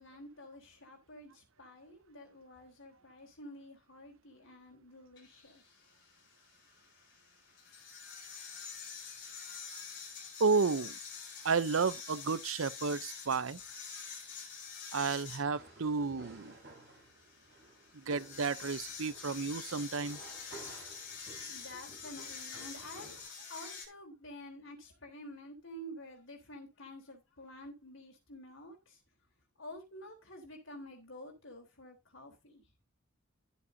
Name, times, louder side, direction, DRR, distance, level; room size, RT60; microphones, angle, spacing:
voice 1, 0.0-5.6 21.5-29.0 29.6-32.7, left 1 dB, 75° left, 3.8 m, -50 dB
sound 1, 5.2-23.9, left 5 dB, 55° left, 4.6 m, -47 dB
voice 2, 10.4-11.0 11.4-13.6 14.9-16.5 17.9-20.2, right 4 dB, 85° right, 0.7 m, -32 dB
sound 2, 15.4-23.2, right 2 dB, 50° right, 7.7 m, -55 dB
13.5 x 7.9 x 2.8 m
head